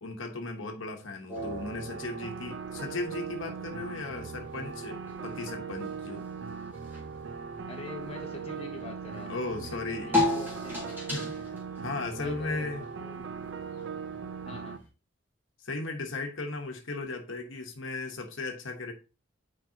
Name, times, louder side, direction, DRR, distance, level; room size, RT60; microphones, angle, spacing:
voice 1, 0.0-6.3 9.3-10.1 11.1-12.8 15.6-18.9, left 3 dB, 85° left, 1.1 m, -36 dB
sound 1, 1.3-14.9, left 2 dB, 10° right, 2.3 m, -38 dB
sound 2, 1.4-14.8, right 5 dB, 70° right, 0.5 m, -39 dB
voice 2, 7.7-10.9 12.2-13.3 14.4-14.8, left 2 dB, 30° left, 1.3 m, -45 dB
9.0 x 4.7 x 2.8 m
head